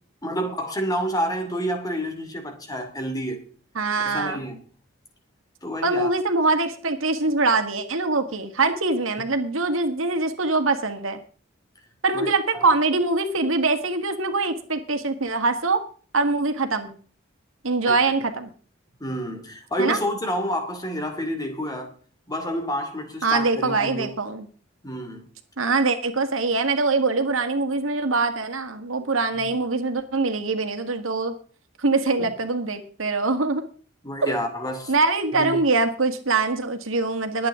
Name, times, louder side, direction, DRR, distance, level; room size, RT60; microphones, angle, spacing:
voice 1, 0.2-3.4 4.0-4.6 5.6-6.1 12.1-12.6 17.9-18.0 19.0-21.9 22.3-24.1 24.8-25.3 29.4-29.5 32.2-32.3 34.0-34.9 35.3-35.6, equal, 20° left, 2.6 m, -29 dB
voice 2, 3.8-4.4 5.8-11.2 12.0-15.8 16.1-17.0 17.6-18.5 19.8-20.0 23.2-24.5 25.6-31.4 31.8-33.6 34.2-34.4 34.9-37.5, right 3 dB, 85° right, 1.7 m, -23 dB
21.5 x 8.8 x 3.7 m
head